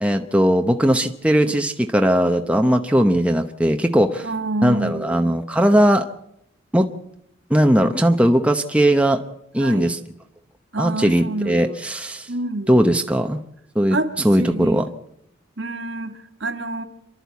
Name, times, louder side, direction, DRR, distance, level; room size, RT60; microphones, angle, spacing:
voice 1, 0.0-4.3 4.6-6.1 6.7-6.9 7.5-9.2 9.5-10.0 10.8-12.3 12.7-13.4 13.7-14.0 14.2-14.9, equal, 5° right, 5 dB, 0.8 m, -18 dB
voice 2, 4.2-5.3 9.6-9.9 10.7-11.8 12.3-12.8 13.9-14.9 15.6-16.8, right 2 dB, 55° right, 8 dB, 1.7 m, -28 dB
28.0 x 12.0 x 8.3 m, 0.77 s
head